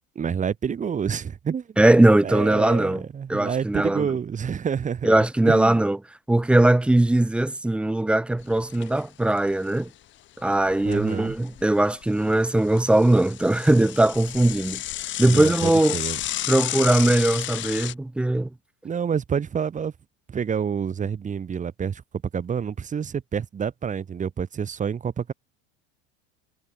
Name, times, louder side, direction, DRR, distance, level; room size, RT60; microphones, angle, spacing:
voice 1, 0.1-1.7 2.2-5.2 5.5-5.8 10.8-11.4 15.3-16.2 18.8-19.9 20.3-22.0 22.3-25.3, right 7 dB, 25° right, 2.7 m, -28 dB
voice 2, 1.8-3.0 3.3-4.1 5.0-6.0 6.3-9.9 10.4-14.8 15.2-16.0 16.5-18.5, right 1 dB, 5° right, 0.4 m, -20 dB
Bicycle / Mechanisms, 8.4-9.0 9.4-9.5 9.7-9.8 10.5-11.6 12.0-17.9, left 14 dB, 35° left, 1.1 m, -32 dB
supercardioid pair, 130°, 31 cm